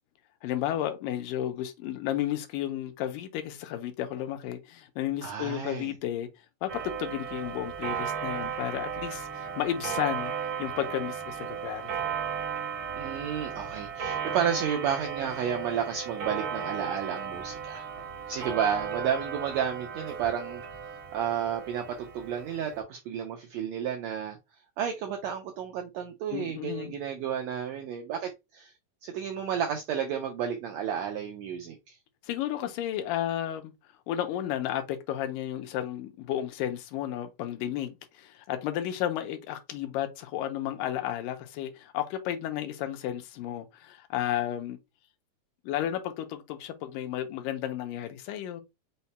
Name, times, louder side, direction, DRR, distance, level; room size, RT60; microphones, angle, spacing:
voice 1, 0.4-6.3 6.6-10.3 10.6-11.9 26.3-27.0 32.2-33.7 34.1-44.8 45.6-48.6, left 12 dB, 85° left, 2.3 m, -33 dB
voice 2, 5.2-5.9 12.9-17.9 18.3-20.6 21.1-24.4 24.8-28.7 29.0-32.0, right 8 dB, 85° right, 1.5 m, -32 dB
Clock, 6.7-22.8, right 7 dB, 60° right, 1.2 m, -35 dB
5.6 x 2.2 x 4.0 m
omnidirectional pair, 3.8 m